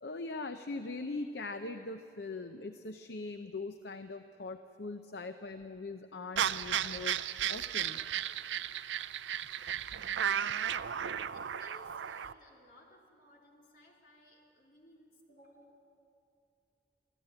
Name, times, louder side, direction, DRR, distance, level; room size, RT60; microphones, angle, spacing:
voice 1, 0.0-7.2 7.5-8.0, left 3 dB, 65° left, 8 dB, 0.7 m, -41 dB
sound 1, 6.4-12.3, right 9 dB, 90° right, 0.5 m, -34 dB
voice 2, 10.2-10.9 11.3-15.8, left 1 dB, 50° left, -1 dB, 3.5 m, -60 dB
24.0 x 14.5 x 8.9 m, 2.7 s
head